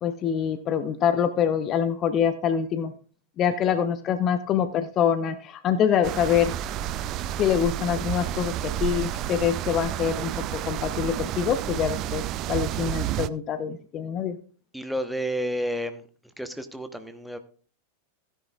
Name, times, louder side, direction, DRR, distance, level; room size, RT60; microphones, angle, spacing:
voice 1, 0.0-2.9 3.4-6.5 7.4-12.2 12.5-14.4, left 8 dB, 30° left, 11 dB, 0.8 m, -25 dB
sound 1, 6.0-13.3, right 11 dB, 35° right, 0.4 m, -30 dB
voice 2, 14.7-16.1 16.4-17.4, equal, ahead, 8 dB, 1.0 m, -31 dB
16.0 x 10.0 x 2.4 m, 0.40 s
figure-of-eight pair, 90°, 0 cm